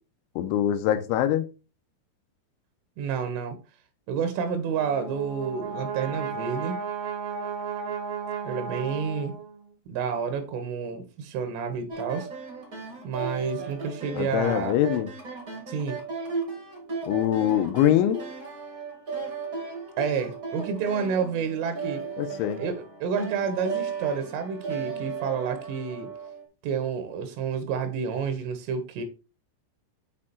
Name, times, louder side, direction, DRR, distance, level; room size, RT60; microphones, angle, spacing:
voice 1, 0.4-1.5 14.1-15.1 17.1-18.2 22.2-22.6, left 11 dB, 85° left, 3.1 m, -23 dB
voice 2, 3.0-3.6 4.1-6.8 8.5-9.3 9.9-12.3 13.0-14.8 15.7-16.0 20.0-22.0 22.6-26.1 26.6-29.0, right 6 dB, 85° right, 3.7 m, -29 dB
Brass instrument, 4.6-9.7, right 6 dB, 65° right, 1.8 m, -34 dB
sound 1, 11.9-26.4, right 5 dB, 45° right, 1.1 m, -36 dB
8.3 x 4.4 x 4.2 m
omnidirectional pair, 5.5 m